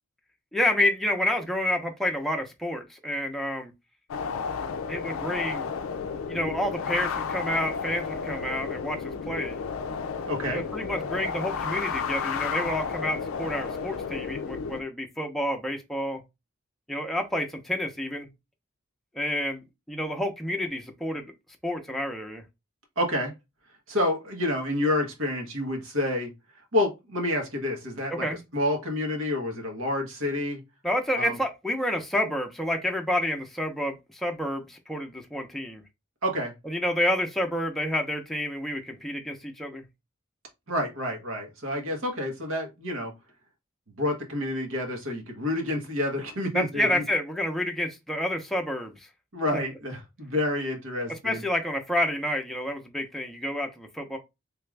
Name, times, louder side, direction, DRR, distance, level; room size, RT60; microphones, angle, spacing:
voice 1, 0.5-3.7 4.9-5.7 6.3-9.6 10.5-16.2 16.9-18.3 19.1-21.3 21.6-22.4 28.1-28.4 30.8-35.8 36.7-39.8 46.5-49.0 49.5-49.6 51.2-54.2, left 1 dB, ahead, 0.6 m, -29 dB
sound 1, 4.1-14.8, left 6 dB, 80° left, 0.4 m, -32 dB
voice 2, 10.3-10.6 23.0-23.3 23.9-26.3 26.7-28.3 28.5-30.6 31.2-31.4 36.2-36.5 40.7-43.1 44.0-47.0 49.3-51.4, left 1 dB, 85° right, 1.2 m, -28 dB
3.3 x 2.4 x 3.2 m
head